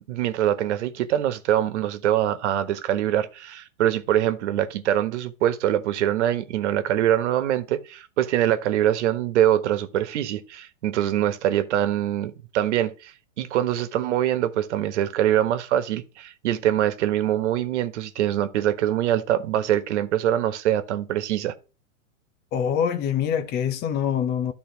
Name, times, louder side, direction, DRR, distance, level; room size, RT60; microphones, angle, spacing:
voice 1, 0.1-13.1 13.4-21.5, right 11 dB, 60° right, 1.4 m, -24 dB
voice 2, 22.5-24.5, left 8 dB, 25° left, 0.9 m, -24 dB
12.0 x 4.1 x 4.4 m
hypercardioid pair, 125°, 39 cm